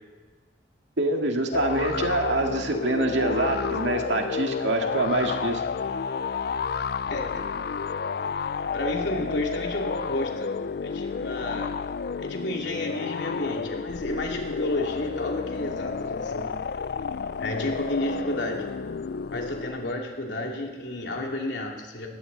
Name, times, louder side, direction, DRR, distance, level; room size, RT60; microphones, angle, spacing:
voice 1, 1.0-5.6, right 2 dB, 90° right, 3 dB, 2.0 m, -25 dB
sound 1, 1.5-19.9, left 5 dB, 60° left, 0.4 m, -31 dB
voice 2, 7.1-7.4 8.7-10.5 10.8-11.7 12.2-16.5 17.4-18.6 19.3-22.1, left 1 dB, 80° left, 0 dB, 2.8 m, -31 dB
20.0 x 15.5 x 4.1 m, 1.4 s
head